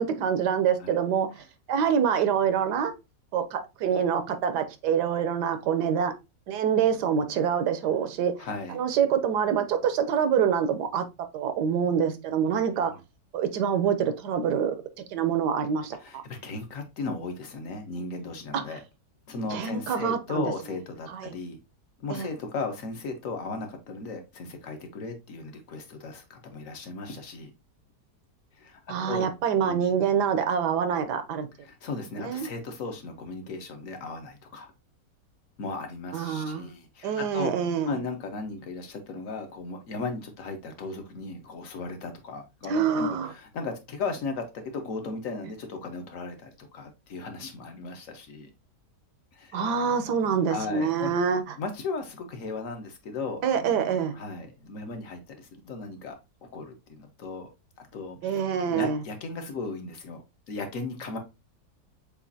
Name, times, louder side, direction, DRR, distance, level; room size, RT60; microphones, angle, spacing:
voice 1, 0.0-2.9 3.3-6.1 6.5-8.3 8.7-11.0 11.3-12.9 13.3-14.8 15.1-16.2 18.5-18.6 19.5-20.4 21.1-21.3 22.1-22.3 28.9-31.5 32.2-32.5 36.1-36.7 37.0-37.9 42.7-43.3 49.5-51.4 53.4-54.2 58.2-59.0, right 7 dB, 75° right, 1.2 m, -26 dB
voice 2, 8.4-8.8 12.8-13.0 16.0-18.8 19.3-21.6 22.0-27.5 28.5-29.3 29.6-29.8 31.6-34.7 35.6-37.5 37.9-48.5 49.3-49.7 50.5-51.1 51.6-57.5 57.8-61.2, left 3 dB, 55° left, 1.2 m, -36 dB
7.1 x 2.5 x 2.7 m
omnidirectional pair, 1.9 m